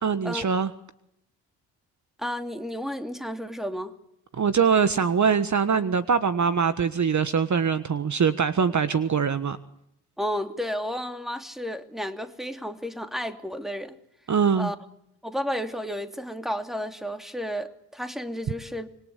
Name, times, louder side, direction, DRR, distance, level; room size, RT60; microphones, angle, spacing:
voice 1, 0.0-0.7 4.4-9.6 14.3-14.7, right 6 dB, 40° right, 1.5 m, -23 dB
voice 2, 2.2-3.9 10.2-14.0 14.5-14.8 15.2-18.9, equal, ahead, 3.0 m, -32 dB
26.0 x 22.0 x 8.3 m
hypercardioid pair, 45°, 43 cm